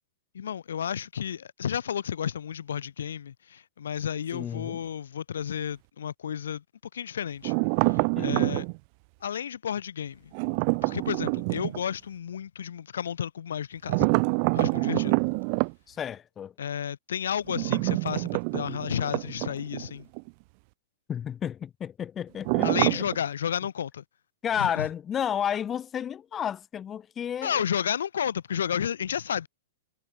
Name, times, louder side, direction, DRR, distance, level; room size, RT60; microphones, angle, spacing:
voice 1, 0.3-6.6 6.9-7.5 7.8-8.7 9.2-10.3 10.8-14.1 14.5-15.1 16.6-20.1 22.6-24.0 24.6-24.9 27.4-29.5, left 8 dB, 90° left, 2.0 m, -32 dB
voice 2, 4.3-4.8 8.2-8.4 15.9-16.5 21.1-23.0 24.4-27.6, left 9 dB, 15° left, 1.1 m, -32 dB
sound 1, 7.4-8.8 10.3-11.8 13.9-15.7 17.5-19.9 20.2-20.3 22.4-23.2, right 36 dB, 35° right, 1.4 m, -26 dB
hypercardioid pair, 160°, 0 cm